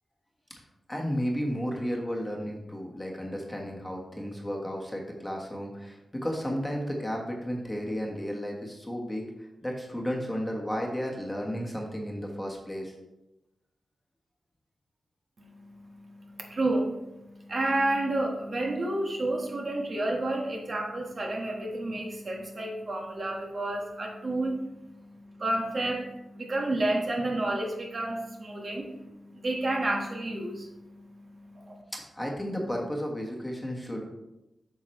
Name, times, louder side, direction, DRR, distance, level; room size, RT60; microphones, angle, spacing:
voice 1, 0.9-9.3 9.6-12.9 31.9-34.1, equal, 10° left, -1 dB, 1.4 m, -33 dB
voice 2, 15.4-31.8, right 2 dB, 45° right, 0 dB, 1.4 m, -31 dB
8.6 x 6.2 x 3.2 m, 0.95 s
wide cardioid pair, 105°, 0 cm